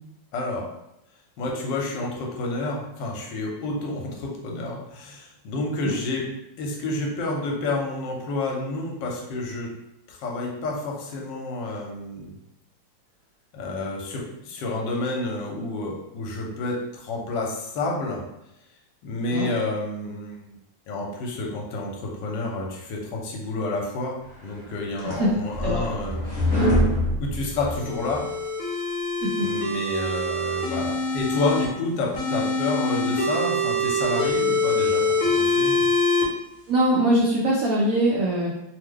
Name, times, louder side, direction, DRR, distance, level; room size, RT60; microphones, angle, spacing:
voice 1, 0.3-0.7 1.4-6.3 6.6-9.7 10.1-12.3 13.5-18.2 19.0-20.5 20.9-24.1 24.4-26.2 27.2-28.2 29.4-35.9, left 2 dB, 75° left, -1 dB, 1.3 m, -29 dB
sound 1, 24.5-28.2, equal, 30° left, 0.8 m, -25 dB
sound 2, 27.7-31.6 32.1-36.2, left 2 dB, 60° left, 1.1 m, -24 dB
voice 2, 36.7-38.5, right 1 dB, 70° right, -4 dB, 0.8 m, -22 dB
3.0 x 2.1 x 3.6 m, 0.84 s
omnidirectional pair, 2.0 m